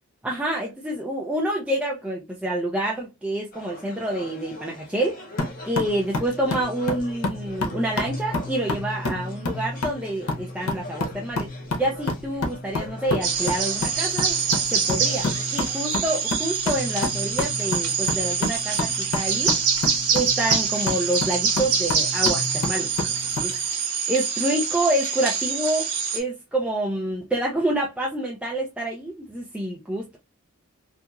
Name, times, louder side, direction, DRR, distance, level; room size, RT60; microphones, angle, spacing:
voice 1, 0.2-5.2 5.6-11.5 11.8-14.4 14.7-19.6 20.1-22.9 23.4-23.5 24.1-25.8 26.1-30.2, right 1 dB, 5° right, 0.4 m, -27 dB
sound 1, 3.5-16.1, left 1 dB, 40° left, 0.8 m, -43 dB
sound 2, 5.4-23.5, left 2 dB, 85° left, 0.8 m, -30 dB
sound 3, 13.2-26.2, right 6 dB, 90° right, 0.8 m, -25 dB
2.9 x 2.4 x 2.3 m
head